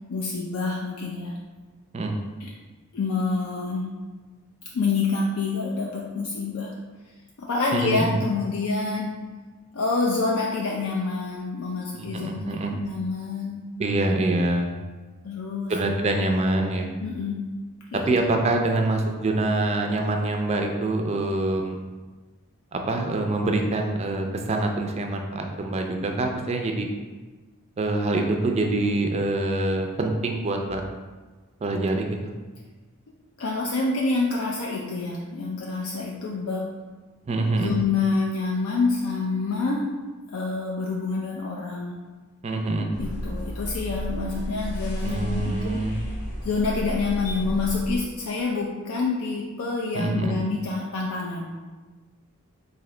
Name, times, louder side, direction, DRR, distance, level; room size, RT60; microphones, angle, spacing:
voice 1, 0.1-1.3 2.4-2.5 2.9-3.9 4.7-6.8 7.4-9.2 9.7-13.7 15.2-15.7 17.0-17.4 17.9-18.2 33.4-36.7 37.6-40.0 40.3-42.0 43.0-45.8 46.4-51.5, left 3 dB, 75° left, -2 dB, 0.4 m, -27 dB
voice 2, 7.7-8.1 11.9-12.8 13.8-14.8 15.7-16.9 18.1-21.8 22.7-26.9 27.8-30.8 31.6-32.3 37.3-37.7 42.4-42.9 45.0-46.0 49.9-50.4, right 2 dB, 30° right, 3 dB, 0.4 m, -25 dB
sound 1, 42.9-48.0, equal, 50° left, 0.8 m, -32 dB
3.8 x 2.7 x 3.2 m, 1.3 s
head